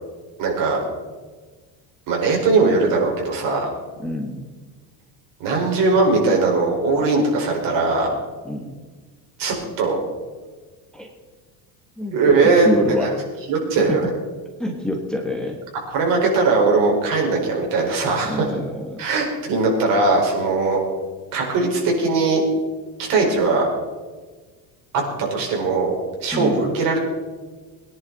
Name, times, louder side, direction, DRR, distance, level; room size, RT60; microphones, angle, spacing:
voice 1, 0.4-0.8 2.1-3.7 5.4-8.1 9.4-10.0 12.1-13.1 13.5-14.1 15.9-18.5 19.0-20.8 21.3-22.4 23.1-23.7 25.3-27.0, right 3 dB, 55° right, 0 dB, 4.8 m, -19 dB
voice 2, 4.0-4.4 8.4-8.8 10.9-11.1 12.0-13.1 13.9-14.1 14.6-15.6 18.2-19.0 26.3-26.8, left 1 dB, ahead, 1 dB, 1.3 m, -27 dB
22.0 x 10.5 x 4.0 m, 1.4 s
cardioid pair, 155°, 39 cm